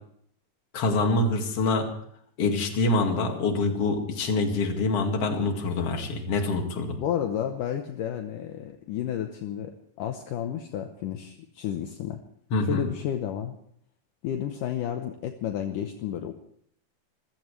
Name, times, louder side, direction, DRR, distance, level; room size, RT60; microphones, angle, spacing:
voice 1, 0.7-1.9 2.4-7.0 12.5-12.9, left 2 dB, 45° left, 3 dB, 2.8 m, -25 dB
voice 2, 7.0-12.2 12.6-13.6 14.2-16.3, left 10 dB, 70° left, 5 dB, 2.4 m, -31 dB
26.5 x 16.0 x 3.3 m, 0.65 s
omnidirectional pair, 4.2 m